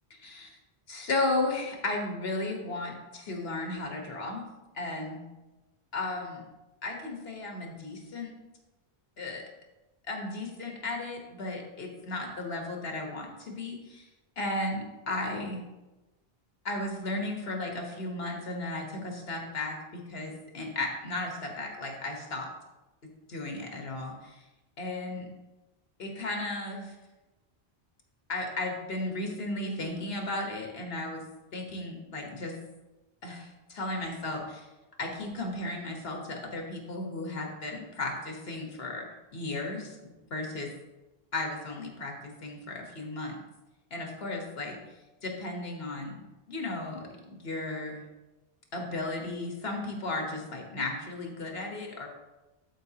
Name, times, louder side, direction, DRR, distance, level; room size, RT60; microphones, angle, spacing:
voice 1, 0.9-4.5 4.7-5.2 5.9-6.4 6.8-8.3 9.2-9.4 10.1-14.1 14.4-15.6 16.6-22.5 23.3-24.4 24.8-25.3 26.0-26.9 28.3-31.2 31.5-32.5 33.2-34.6 35.0-39.1 39.3-40.7 41.3-43.4 43.9-44.8 45.2-46.2 46.5-48.0 48.7-52.1, left 2 dB, 75° left, 2 dB, 1.5 m, -35 dB
12.0 x 4.9 x 2.9 m, 1.1 s
omnidirectional pair, 1.0 m